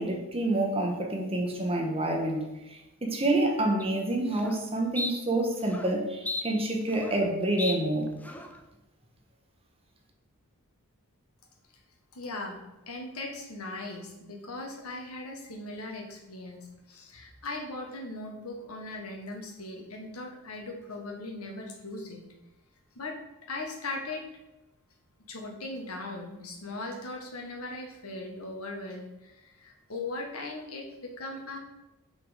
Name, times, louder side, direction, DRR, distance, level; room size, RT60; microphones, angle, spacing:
voice 1, 0.0-8.2, right 1 dB, 25° right, 1 dB, 1.3 m, -28 dB
sound 1, 3.8-3.9 4.3-4.6 5.0-5.1 5.6-5.9 6.3-7.3 7.6-7.8 8.2-8.6, left 2 dB, 5° left, 0.5 m, -35 dB
voice 2, 12.1-22.2 22.9-23.1 23.4-24.2 25.3-31.6, left 2 dB, 85° left, 2 dB, 1.5 m, -39 dB
6.1 x 5.7 x 5.1 m, 1.0 s
head